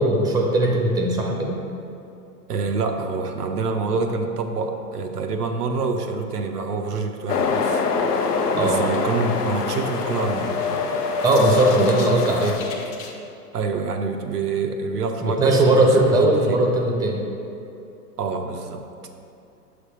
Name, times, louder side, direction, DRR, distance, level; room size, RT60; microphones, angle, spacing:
voice 1, 0.0-1.6 8.5-8.8 11.2-12.6 15.2-17.2, right 2 dB, 10° right, 0 dB, 0.7 m, -19 dB
voice 2, 2.5-7.8 8.6-10.8 13.5-16.6 18.2-18.8, right 4 dB, 85° right, 4 dB, 0.7 m, -26 dB
sound 1, 7.3-12.6, left 4 dB, 85° left, 0.7 m, -25 dB
sound 2, 10.0-13.1, left 5 dB, 30° left, 0.7 m, -28 dB
6.5 x 3.5 x 5.0 m, 2.7 s
hypercardioid pair, 105°, 46 cm